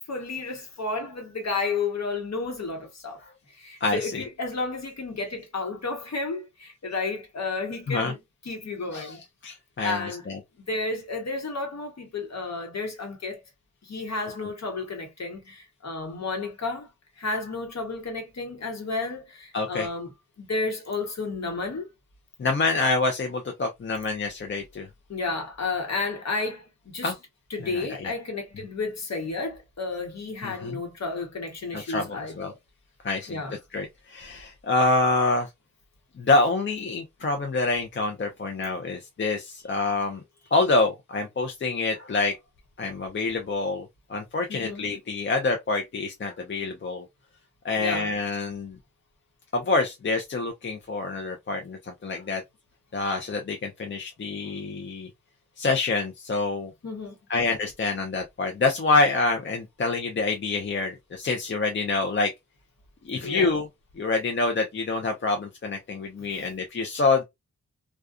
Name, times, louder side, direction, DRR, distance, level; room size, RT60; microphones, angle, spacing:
voice 1, 0.1-3.2 3.6-8.2 8.4-9.2 9.8-10.3 10.7-13.4 13.8-16.9 17.2-21.9 25.1-27.1 27.5-32.6 33.3-33.6 44.5-45.0 47.8-48.1 56.8-57.2 63.2-63.5 66.3-66.5, left 3 dB, 60° left, 1.1 m, -32 dB
voice 2, 3.8-4.2 7.9-8.1 8.9-9.1 9.4-10.4 19.5-19.9 22.4-24.9 27.0-27.1 27.6-28.1 30.4-30.8 31.7-32.5 33.0-33.4 33.7-35.5 36.2-40.2 40.5-42.3 42.8-47.1 47.6-48.8 49.5-52.4 52.9-55.1 55.6-56.7 57.3-62.3 63.1-63.7 64.0-67.2, left 3 dB, 40° left, 0.6 m, -26 dB
2.4 x 2.3 x 2.3 m
wide cardioid pair, 95°, 31 cm